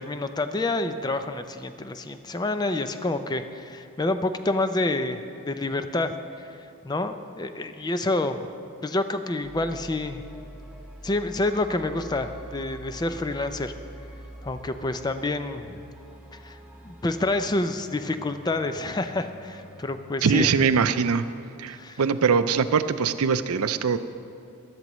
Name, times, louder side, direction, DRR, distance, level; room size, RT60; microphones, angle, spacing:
voice 1, 0.0-6.5 6.8-8.5 8.8-10.2 11.0-13.7 14.4-15.8 16.4-16.6 16.8-20.5 21.8-22.0, left 2 dB, 20° left, 9 dB, 0.4 m, -28 dB
sound 1, 9.4-20.0, right 1 dB, 5° right, 0.8 m, -45 dB
voice 2, 20.2-21.3 21.6-24.0, right 6 dB, 85° right, 12 dB, 0.5 m, -22 dB
16.0 x 12.0 x 3.1 m, 2.5 s
head